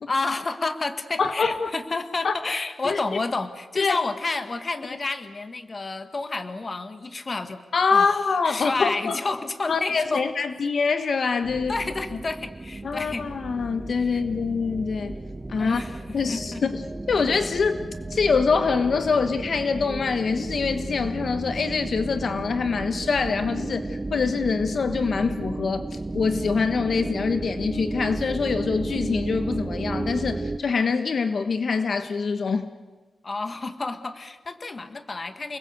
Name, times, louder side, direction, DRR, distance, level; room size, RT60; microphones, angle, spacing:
voice 1, 0.1-7.6 7.9-8.1 8.5-10.3 11.7-13.3 14.0-14.2 15.6-16.6 33.2-35.6, left 3 dB, 35° left, 9 dB, 1.7 m, -30 dB
voice 2, 1.2-1.7 2.2-2.3 2.8-3.0 3.8-4.0 7.7-9.2 9.7-11.7 12.8-15.1 15.5-15.8 16.1-16.8 17.1-17.8 18.1-32.7, left 5 dB, 60° left, 9 dB, 1.3 m, -24 dB
sound 1, 11.4-30.6, right 2 dB, 25° right, 1.0 m, -33 dB
29.0 x 21.0 x 8.2 m, 1.4 s
wide cardioid pair, 135°, 0 cm